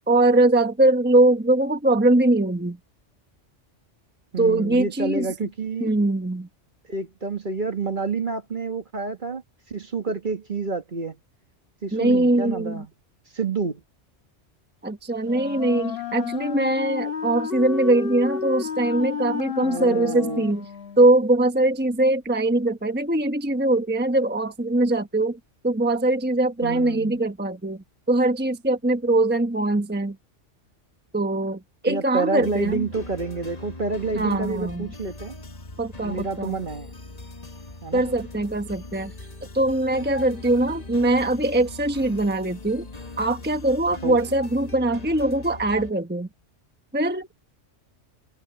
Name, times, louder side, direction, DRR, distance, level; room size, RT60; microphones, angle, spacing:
voice 1, 0.1-2.8 4.4-5.3 5.8-6.5 11.9-12.8 14.8-20.7 21.0-25.4 25.6-30.2 31.1-32.9 34.1-34.9 35.8-36.5 37.9-39.1 39.5-42.9 43.2-46.3 46.9-47.5, right 2 dB, 10° right, 1.1 m, -22 dB
voice 2, 4.3-5.9 6.8-9.4 9.7-11.2 11.8-12.9 13.3-13.8 19.6-20.5 26.6-27.2 31.9-35.4 36.0-37.0 37.8-38.0 44.0-44.2, right 4 dB, 40° right, 1.8 m, -29 dB
Wind instrument woodwind instrument, 15.2-21.1, left 7 dB, 50° left, 1.7 m, -31 dB
sound 1, 32.4-45.9, left 2 dB, 35° left, 1.7 m, -40 dB
omnidirectional pair, 1.3 m